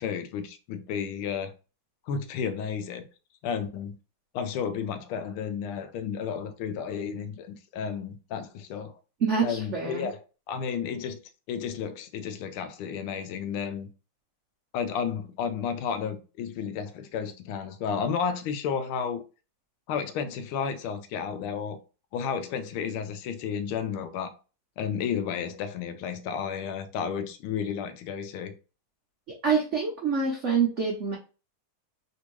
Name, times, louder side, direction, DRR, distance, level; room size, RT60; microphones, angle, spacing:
voice 1, 0.0-1.5 2.1-3.1 3.4-4.0 4.3-8.9 9.4-11.2 11.5-13.9 14.7-19.2 19.9-21.8 22.1-24.3 24.8-28.6, left 7 dB, 85° left, 1.4 m, -32 dB
voice 2, 9.2-10.1 29.4-31.2, right 5 dB, 80° right, 0.6 m, -26 dB
3.5 x 2.7 x 3.0 m
omnidirectional pair, 2.3 m